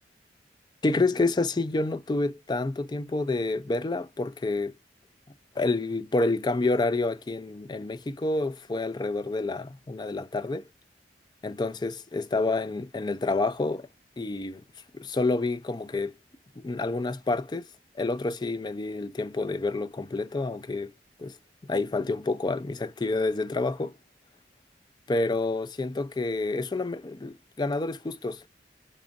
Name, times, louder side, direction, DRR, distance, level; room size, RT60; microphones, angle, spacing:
voice 1, 0.8-4.7 5.6-10.6 11.4-13.9 14.2-14.6 14.9-16.1 16.6-17.7 18.0-20.9 21.2-21.4 21.7-23.9 25.1-28.4, left 2 dB, 25° left, 0.3 m, -28 dB
5.1 x 2.4 x 3.8 m
head